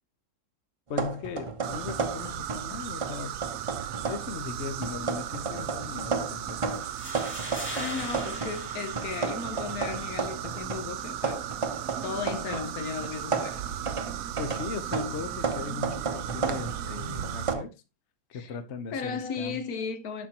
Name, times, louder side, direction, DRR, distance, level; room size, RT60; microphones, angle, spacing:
voice 1, 0.9-3.4 4.0-6.8 14.4-17.7 18.3-19.6, left 5 dB, 55° left, 0.9 m, -38 dB
sound 1, 0.9-2.7 3.0-4.3 4.8-8.6 9.0-12.7 13.0-17.6, right 4 dB, 35° right, 0.5 m, -33 dB
sound 2, 1.6-17.5, right 10 dB, 70° right, 0.9 m, -36 dB
sound 3, 6.7-9.7, equal, 5° left, 2.4 m, -41 dB
voice 2, 7.4-11.5 12.0-13.6 18.3-18.5 18.9-20.3, left 5 dB, 70° left, 1.3 m, -35 dB
11.0 x 4.4 x 2.8 m
omnidirectional pair, 1.7 m